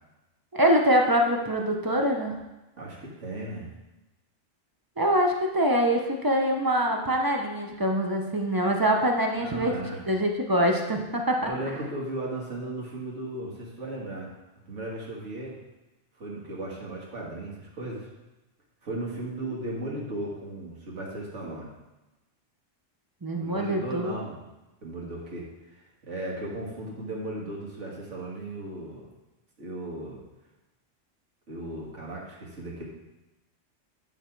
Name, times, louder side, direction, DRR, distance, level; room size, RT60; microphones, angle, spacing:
voice 1, 0.5-2.4 5.0-9.7 10.1-11.5 23.2-24.2, equal, 25° right, 2 dB, 0.4 m, -24 dB
voice 2, 2.8-3.7 9.4-10.0 11.4-14.3 14.7-15.6 16.2-18.1 18.8-21.7 23.4-24.4 24.8-29.1 29.6-30.2 31.5-32.9, right 1 dB, 65° right, -4 dB, 1.9 m, -36 dB
9.1 x 4.2 x 4.5 m, 1.0 s
omnidirectional pair, 1.3 m